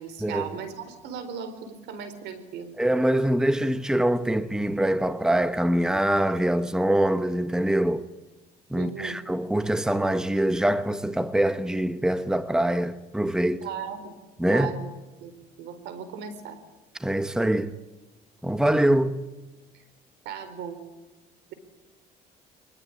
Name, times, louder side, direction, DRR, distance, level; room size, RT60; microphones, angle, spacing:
voice 1, 0.0-2.7 8.8-9.2 13.6-14.1 14.5-14.9 15.2-15.3 15.6-16.6 20.2-20.8, right 7 dB, 85° right, 4.2 m, -37 dB
voice 2, 2.8-8.0 8.7-13.7 14.4-14.7 17.0-17.7 18.4-19.2, right 1 dB, 5° right, 1.1 m, -24 dB
24.5 x 21.0 x 10.0 m
cardioid pair, 110°, 17 cm